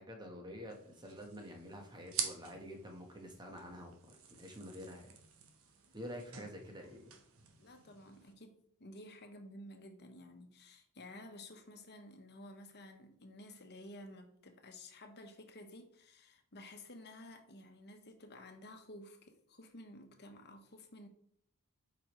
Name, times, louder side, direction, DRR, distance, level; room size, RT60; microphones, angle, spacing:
voice 1, 0.0-5.2 5.9-7.1, equal, 20° right, 1.3 m, -48 dB
sound 1, 0.7-8.3, right 7 dB, 65° right, 1.1 m, -47 dB
voice 2, 7.6-21.1, left 1 dB, 50° left, 1.1 m, -53 dB
8.4 x 5.1 x 3.1 m
head